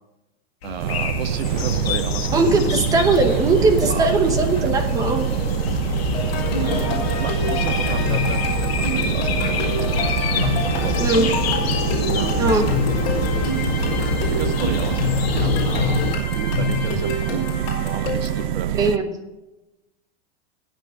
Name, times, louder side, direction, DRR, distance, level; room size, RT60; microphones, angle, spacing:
sound 1, 0.6-16.2, left 6 dB, 90° left, 1.9 m, -26 dB
voice 1, 0.6-2.6 3.9-4.7 6.6-10.0 10.3-11.1 11.9-12.8 14.3-17.5 17.8-18.9, right 7 dB, 80° right, 10 dB, 1.3 m, -33 dB
sound 2, 0.8-19.0, right 12 dB, 55° right, 0.5 m, -25 dB
voice 2, 2.3-5.3 11.0-11.3 12.4-12.7 18.7-19.1, right 3 dB, 10° right, 6 dB, 0.9 m, -19 dB
sound 3, 6.1-18.4, left 3 dB, 45° left, 4.7 m, -28 dB
20.0 x 7.7 x 3.7 m, 0.99 s
supercardioid pair, 175°, 30 cm